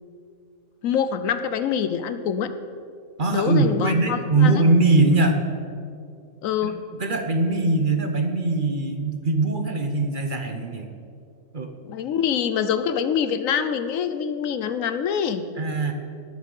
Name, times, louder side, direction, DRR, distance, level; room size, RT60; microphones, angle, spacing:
voice 1, 0.8-2.5 3.3-4.6 6.4-6.8 11.8-15.4, left 8 dB, 75° left, 10 dB, 1.0 m, -25 dB
voice 2, 3.2-5.4 6.6-6.7 7.0-10.9 11.5-11.7 15.6-15.9, right 2 dB, 40° right, 5 dB, 1.0 m, -21 dB
19.0 x 6.4 x 5.4 m, 2.4 s
omnidirectional pair, 1.4 m